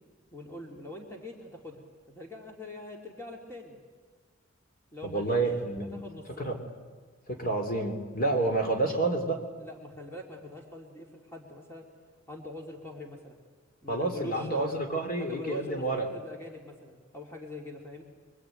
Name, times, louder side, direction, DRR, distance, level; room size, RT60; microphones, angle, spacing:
voice 1, 0.3-3.8 4.9-5.4 5.8-6.5 9.6-11.9 12.3-13.4 13.8-14.8 15.2-18.0, left 1 dB, 10° left, 0 dB, 2.9 m, -43 dB
voice 2, 5.0-6.0 6.4-6.6 7.3-9.4 13.9-16.1, right 2 dB, 40° left, 3 dB, 3.2 m, -29 dB
24.5 x 24.0 x 9.2 m, 1.5 s
head